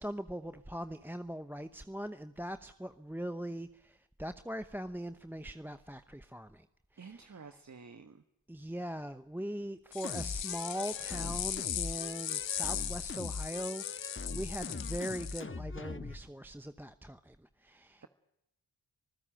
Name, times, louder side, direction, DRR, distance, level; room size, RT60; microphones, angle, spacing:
voice 1, 0.0-6.7 6.9-7.6 8.5-18.1, equal, 5° right, 11 dB, 0.9 m, -41 dB
voice 2, 7.0-8.2, right 5 dB, 35° right, 9 dB, 1.5 m, -50 dB
sound 1, 9.9-15.4, left 10 dB, 75° left, 1.2 m, -38 dB
sound 2, 10.0-16.2, left 3 dB, 25° left, 1.4 m, -42 dB
26.0 x 15.0 x 9.0 m, 0.85 s
cardioid pair, 50°, 46 cm